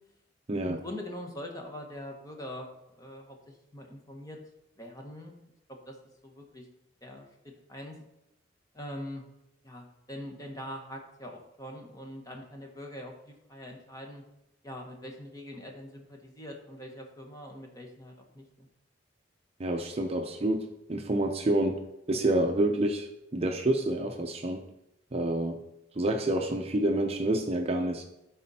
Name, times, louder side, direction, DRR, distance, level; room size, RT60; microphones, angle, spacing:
voice 1, 0.7-4.4 4.8-5.4 5.8-5.9 6.2-6.7 7.0-7.3 7.7-8.0 8.7-9.2 9.6-14.2 14.6-18.7, left 1 dB, 20° left, 1 dB, 1.3 m, -43 dB
voice 2, 19.6-23.1 23.3-24.6 25.1-25.6 26.0-28.0, right 1 dB, 35° right, 4 dB, 0.6 m, -28 dB
13.0 x 4.3 x 4.2 m, 0.85 s
head